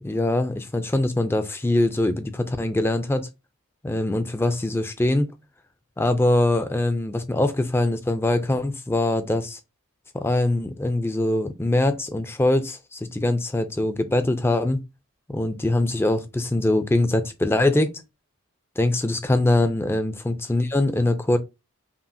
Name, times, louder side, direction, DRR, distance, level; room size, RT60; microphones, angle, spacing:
voice 1, 0.0-3.3 3.8-5.3 6.0-9.6 10.1-14.8 15.3-18.0 18.8-21.4, left 1 dB, 10° left, 0.3 m, -23 dB
5.5 x 2.4 x 2.7 m
head